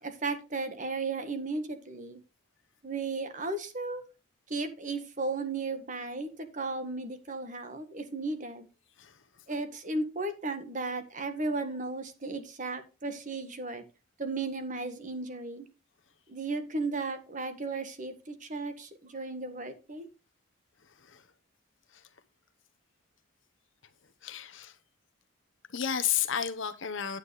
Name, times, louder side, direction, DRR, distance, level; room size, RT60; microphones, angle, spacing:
voice 1, 0.0-2.2 2.8-4.0 4.5-8.7 9.5-13.8 14.2-15.7 16.3-20.1, right 3 dB, 40° right, 1.5 m, -35 dB
voice 2, 20.9-21.3 21.9-22.1 24.2-24.8 25.7-27.2, left 9 dB, 65° left, 1.0 m, -32 dB
9.4 x 9.3 x 3.2 m
head